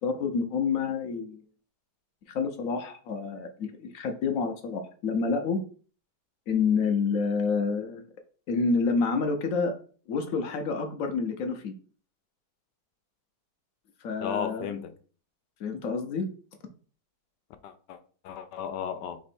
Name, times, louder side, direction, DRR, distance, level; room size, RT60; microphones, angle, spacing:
voice 1, 0.0-1.4 2.3-5.6 6.5-8.0 8.5-9.7 10.1-11.7 14.0-14.7 15.6-16.3, left 4 dB, 65° left, 0.9 m, -28 dB
voice 2, 14.2-14.9 17.6-18.0 18.2-19.2, left 8 dB, 80° left, 1.2 m, -34 dB
3.4 x 3.0 x 4.3 m
omnidirectional pair, 1.8 m